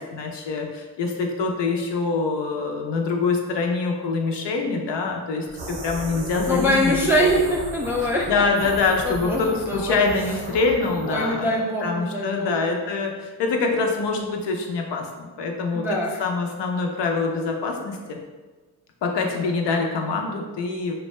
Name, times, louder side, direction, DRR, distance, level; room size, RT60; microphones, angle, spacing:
voice 1, 0.0-7.3 8.3-11.5 11.8-18.2 19.0-20.9, left 4 dB, 60° left, 2 dB, 0.6 m, -25 dB
sound 1, 5.5-11.5, right 2 dB, 80° right, 0.7 m, -35 dB
voice 2, 6.5-8.4 9.0-10.0 11.1-12.6 15.7-16.2 19.2-19.4, equal, 5° right, -2 dB, 0.3 m, -24 dB
2.6 x 2.1 x 3.0 m, 1.3 s
supercardioid pair, 45°, 47 cm